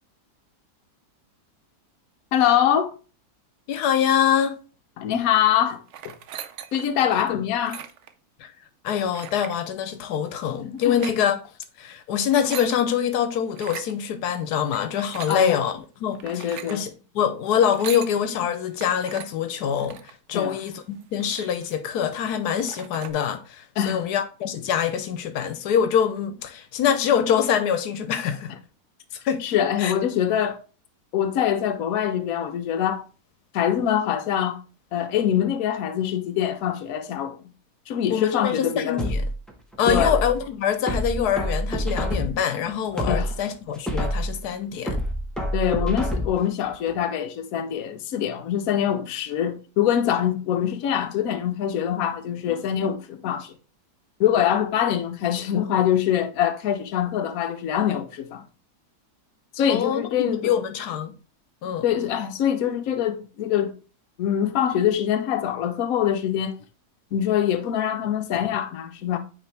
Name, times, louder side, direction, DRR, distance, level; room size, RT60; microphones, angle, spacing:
voice 1, 2.3-2.9 5.0-5.8 6.7-7.8 10.6-10.9 15.3-15.6 16.2-16.8 20.3-20.6 23.8-24.0 29.4-30.6 31.1-33.0 33.5-34.6 34.9-37.4 37.9-39.0 39.9-40.2 43.1-43.3 45.5-53.5 54.2-58.4 59.5-60.5 61.8-63.7 64.2-66.6 67.1-69.2, left 10 dB, 65° left, 1.1 m, -24 dB
voice 2, 3.7-4.5 7.3-7.4 8.4-8.5 8.8-11.4 11.8-28.5 29.2-29.4 29.8-29.9 38.1-39.3 39.8-45.0 59.7-61.1 61.6-61.9, left 8 dB, 85° left, 1.2 m, -25 dB
sound 1, 5.9-7.0 7.5-8.1 9.1-9.6 10.8-11.2 12.1-12.8 13.5-13.9 14.7-15.4 16.1-16.8 17.6-18.1 18.8-19.3 19.8-20.1 20.7-20.8 21.0-21.9 22.3-22.4 22.6-23.1, right 9 dB, 65° right, 0.7 m, -39 dB
sound 2, 39.0-40.4 40.9-42.5 42.9-44.4 44.9-46.5 46.9-47.0, equal, ahead, 0.8 m, -27 dB
8.6 x 3.4 x 3.3 m
omnidirectional pair, 1.7 m